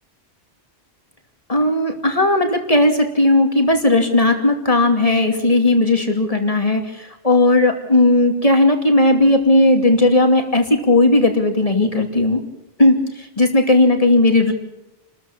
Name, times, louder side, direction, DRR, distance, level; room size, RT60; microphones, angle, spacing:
voice 1, 1.5-12.4 12.8-14.5, left 2 dB, 35° left, 5 dB, 2.7 m, -16 dB
28.5 x 13.5 x 7.3 m, 0.92 s
omnidirectional pair, 1.1 m